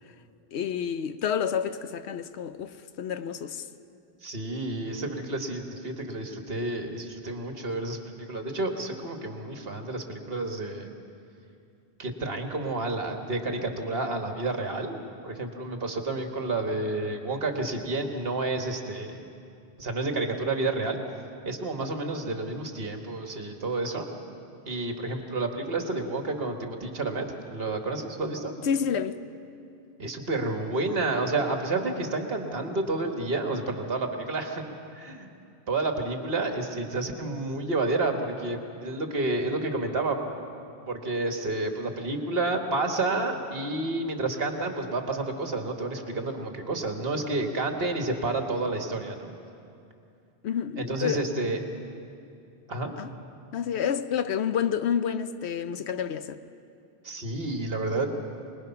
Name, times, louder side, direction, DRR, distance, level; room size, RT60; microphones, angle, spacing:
voice 1, 0.5-3.7 28.6-29.2 50.4-51.2 53.0-53.1 53.5-56.4, left 8 dB, 75° left, 1.0 m, -29 dB
voice 2, 4.2-10.9 12.0-15.0 15.2-19.3 19.8-21.0 21.5-24.1 24.7-27.3 27.5-28.5 30.0-35.3 35.7-40.2 40.9-49.3 50.8-51.6 52.7-52.9 57.0-58.1, right 2 dB, 60° right, 1.8 m, -30 dB
25.0 x 20.0 x 5.8 m
omnidirectional pair, 1.1 m